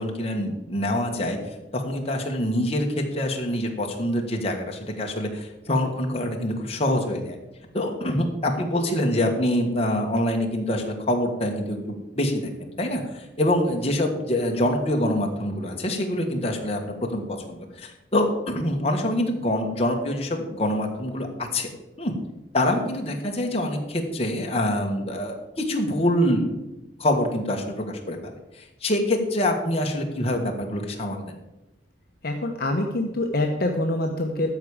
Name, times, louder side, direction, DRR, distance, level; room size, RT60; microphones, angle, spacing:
voice 1, 0.0-1.4 1.7-7.4 7.7-21.7 22.0-22.1 22.5-26.5 27.0-31.4, left 1 dB, 35° left, 2 dB, 1.6 m, -25 dB
voice 2, 32.2-34.5, left 1 dB, 55° left, 2 dB, 0.9 m, -25 dB
13.0 x 4.9 x 7.1 m, 1.0 s
head